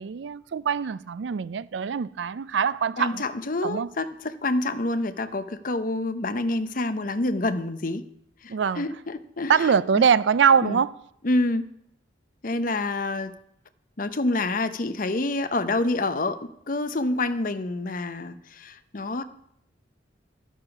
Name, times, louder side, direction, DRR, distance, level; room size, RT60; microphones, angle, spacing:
voice 1, 0.0-3.2 3.6-3.9 8.5-8.9 9.5-11.0, right 6 dB, 75° right, 0.4 m, -23 dB
voice 2, 3.0-8.1 8.4-9.5 9.9-10.0 10.6-10.8 11.2-11.7 12.4-13.4 14.0-19.2, left 2 dB, 45° left, 0.7 m, -27 dB
12.5 x 10.0 x 5.9 m
head